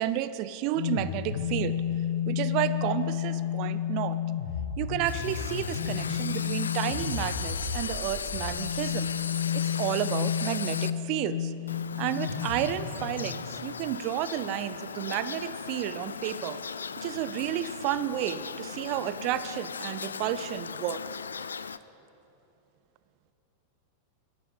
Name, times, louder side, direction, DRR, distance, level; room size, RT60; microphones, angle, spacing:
voice 1, 0.0-1.8 2.3-4.2 4.8-9.1 9.5-11.5 12.0-16.6 17.0-21.0, right 12 dB, 45° right, 14 dB, 0.5 m, -31 dB
sound 1, 0.7-13.6, left 9 dB, 55° left, 1.3 m, -32 dB
sound 2, 5.0-10.9 11.7-21.8, left 6 dB, 70° left, 0.3 m, -37 dB
11.5 x 9.1 x 8.2 m, 2.8 s
figure-of-eight pair, 90°, 0 cm